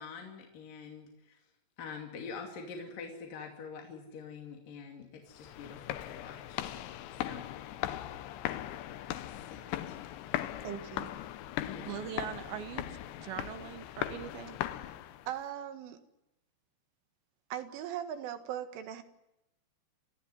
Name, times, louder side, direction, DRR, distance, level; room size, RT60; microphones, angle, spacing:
voice 1, 0.0-1.4 1.8-6.6 7.2-7.5 8.7-9.0 9.3-10.1 11.6-11.9, left 5 dB, 50° left, 2 dB, 3.9 m, -46 dB
sound 1, 5.3-15.4, left 13 dB, 75° left, 3.1 m, -39 dB
voice 2, 10.6-11.1 15.3-16.0 17.5-19.0, right 10 dB, 85° right, 8 dB, 4.3 m, -39 dB
voice 3, 11.9-14.6, right 10 dB, 65° right, 11 dB, 2.6 m, -41 dB
28.5 x 15.0 x 9.8 m, 0.91 s
omnidirectional pair, 5.5 m